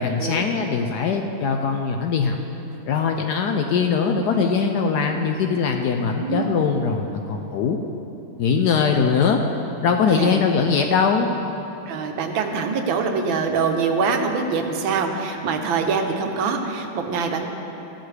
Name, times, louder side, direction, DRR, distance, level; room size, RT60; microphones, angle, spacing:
voice 1, 0.0-2.4 2.9-7.8 8.4-9.4 9.8-11.3, left 5 dB, 70° left, 4 dB, 1.0 m, -21 dB
voice 2, 5.9-6.6 10.1-10.3 11.9-17.5, right 5 dB, 80° right, 4 dB, 1.6 m, -24 dB
14.0 x 12.0 x 3.3 m, 3.0 s
omnidirectional pair, 2.2 m